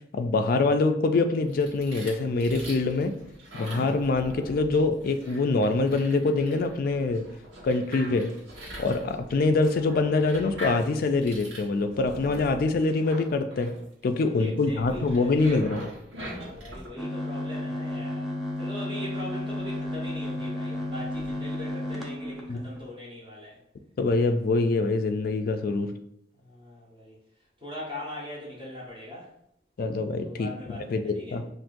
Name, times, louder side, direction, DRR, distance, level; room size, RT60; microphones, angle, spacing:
voice 1, 0.1-3.2 3.5-7.3 7.6-8.3 8.8-13.7 14.0-15.9 22.5-22.6 24.0-25.9 29.8-31.5, left 3 dB, 55° left, 6 dB, 0.4 m, -25 dB
sound 1, 1.4-16.9, equal, 85° right, 1.2 m, -42 dB
voice 2, 14.4-15.5 16.2-23.6 26.4-27.2 27.6-29.3 30.2-31.4, left 1 dB, 30° right, -6 dB, 1.2 m, -41 dB
sound 2, 17.0-22.9, left 1 dB, ahead, 0.6 m, -33 dB
5.8 x 2.6 x 2.5 m, 0.73 s
head